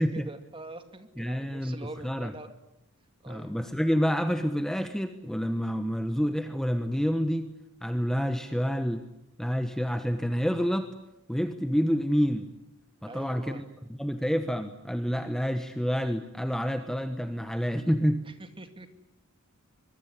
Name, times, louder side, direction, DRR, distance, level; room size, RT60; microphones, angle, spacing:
voice 1, 0.0-2.5 3.2-3.5 13.0-13.6 18.2-18.9, right 2 dB, 25° right, 8 dB, 2.4 m, -44 dB
voice 2, 1.2-2.3 3.3-7.5 7.8-9.1 9.4-10.9 11.3-12.5 13.0-13.6 14.0-18.2, equal, ahead, 8 dB, 1.2 m, -28 dB
24.0 x 22.5 x 10.0 m, 0.88 s
head